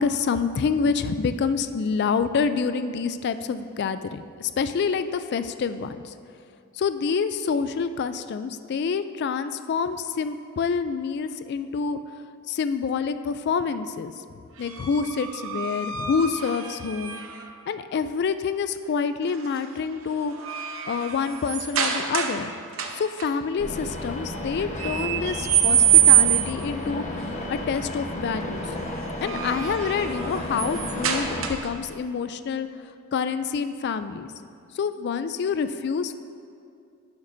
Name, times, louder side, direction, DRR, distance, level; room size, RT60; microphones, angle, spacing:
voice 1, 0.0-6.1 6.7-12.0 12.5-14.1 14.6-17.2 17.7-20.3 20.8-22.5 22.9-28.7 29.2-32.7 33.1-34.3 34.7-36.1, left 5 dB, 50° left, 11 dB, 0.3 m, -27 dB
sound 1, 14.6-17.5 19.3-19.6 20.0-22.5 22.7-23.3 24.8-26.7 29.0-31.9, right 11 dB, 65° right, 0.8 m, -24 dB
sound 2, 23.6-31.5, left 1 dB, 35° left, 1.0 m, -33 dB
11.5 x 10.5 x 2.6 m, 2.4 s
head